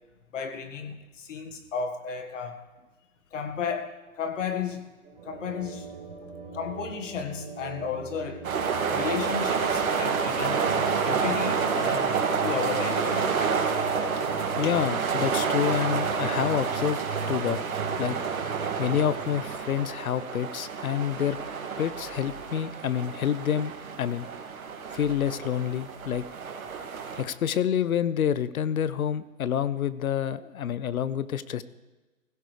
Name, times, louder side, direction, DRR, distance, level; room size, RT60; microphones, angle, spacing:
voice 1, 0.3-2.6 3.3-4.9 5.3-5.9 6.5-8.4 8.9-10.7 11.0-12.2 12.4-13.5 14.2-14.3 14.6-14.7, left 6 dB, 60° left, 7 dB, 1.8 m, -33 dB
sound 1, 5.0-13.9, right 4 dB, 15° right, 3.8 m, -46 dB
sound 2, 5.2-19.6, right 5 dB, 30° right, 1.2 m, -40 dB
sound 3, 8.4-27.2, right 5 dB, 75° right, 2.3 m, -29 dB
voice 2, 14.6-17.0 17.3-17.6 18.0-18.2 18.8-21.4 21.8-23.7 24.0-24.3 24.9-26.2 27.2-31.6, left 9 dB, 80° left, 16 dB, 0.8 m, -28 dB
20.0 x 16.0 x 3.3 m, 1.2 s
hypercardioid pair, 165°, 42 cm